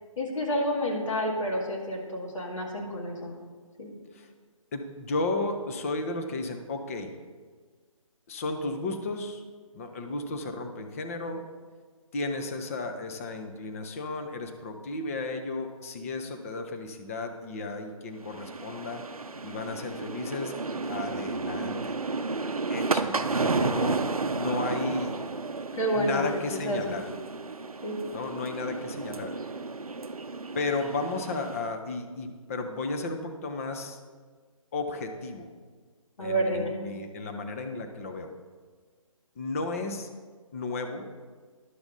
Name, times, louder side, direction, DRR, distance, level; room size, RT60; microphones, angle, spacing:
voice 1, 0.2-3.4 3.8-3.9 25.7-26.3 26.5-27.0 27.8-28.0 36.2-36.7, equal, 60° left, -2 dB, 2.1 m, -29 dB
voice 2, 4.7-7.1 8.3-9.4 9.7-11.4 12.1-19.1 19.4-20.5 20.8-22.0 22.7-25.2 25.9-27.1 28.1-29.3 30.5-34.0 34.7-35.5 36.2-38.3 39.4-40.1 40.5-41.1, left 3 dB, 25° left, 5 dB, 0.6 m, -33 dB
sound 1, 18.2-31.7, right 3 dB, 85° right, 0.5 m, -32 dB
11.0 x 6.9 x 3.9 m, 1.5 s
figure-of-eight pair, 145°, 18 cm